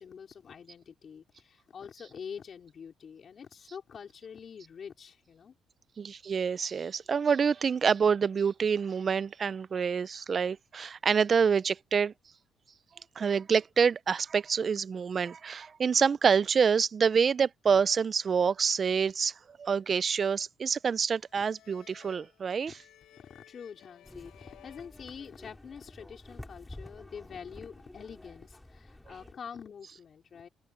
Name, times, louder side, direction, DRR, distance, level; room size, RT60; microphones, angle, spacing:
voice 1, 0.0-5.5 22.7-22.8 23.1-30.5, left 7 dB, 50° left, 4.6 m, -46 dB
voice 2, 6.0-12.1 13.2-19.3 19.6-22.7, right 6 dB, 45° right, 0.5 m, -27 dB
sound 1, 21.3-25.9, left 13 dB, 85° left, 7.9 m, -58 dB
sound 2, 24.0-29.3, left 1 dB, 10° left, 4.4 m, -50 dB
cardioid pair, 90°, 0 cm